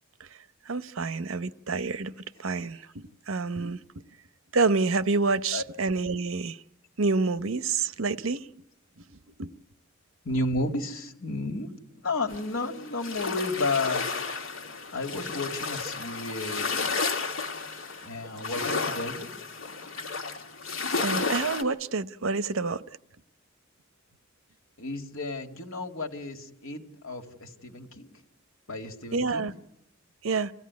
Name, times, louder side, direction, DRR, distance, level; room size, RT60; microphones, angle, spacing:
voice 1, 0.7-2.1 2.4-3.8 4.5-6.6 7.0-8.6 9.4-9.5 21.0-22.8 29.1-29.5 30.2-30.5, right 4 dB, 80° right, 0.8 m, -28 dB
voice 2, 10.2-11.7 12.0-14.1 14.9-16.8 18.0-19.3 24.8-28.1 28.7-29.5, left 2 dB, 90° left, 2.3 m, -32 dB
sound 1, 12.3-21.6, left 4 dB, 75° left, 2.3 m, -32 dB
27.0 x 16.5 x 9.5 m
head